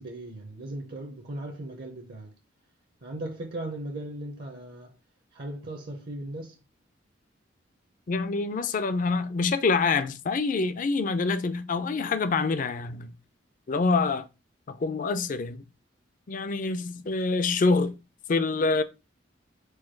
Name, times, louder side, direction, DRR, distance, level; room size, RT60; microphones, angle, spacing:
voice 1, 0.0-2.3 3.0-4.9 5.3-6.6, right 1 dB, 55° right, 0.7 m, -37 dB
voice 2, 8.1-13.1 13.7-14.3 14.7-15.6 16.3-18.0 18.3-18.8, left 4 dB, 45° left, 0.4 m, -26 dB
4.6 x 2.3 x 4.5 m
head